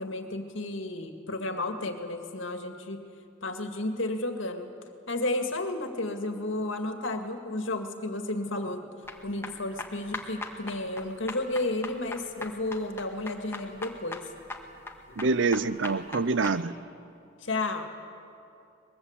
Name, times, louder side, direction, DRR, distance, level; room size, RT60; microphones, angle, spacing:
voice 1, 0.0-3.1 3.4-4.7 5.1-14.2 15.1-15.3 17.4-17.8, left 2 dB, 70° left, 2.1 m, -32 dB
sound 1, 9.0-16.6, left 2 dB, 15° left, 1.7 m, -40 dB
voice 2, 15.2-16.7, right 4 dB, 65° right, 0.7 m, -26 dB
23.5 x 21.0 x 8.2 m
head